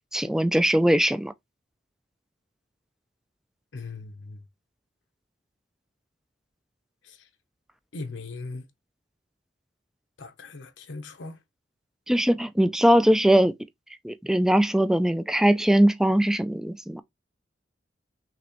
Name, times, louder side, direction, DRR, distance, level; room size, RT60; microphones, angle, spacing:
voice 1, 0.1-1.3 12.1-13.5 14.0-17.0, equal, 5° right, 0.3 m, -21 dB
voice 2, 3.7-4.4 7.0-7.3 7.9-8.7 10.2-11.4, left 3 dB, 75° left, 0.9 m, -39 dB
5.9 x 3.0 x 2.9 m
head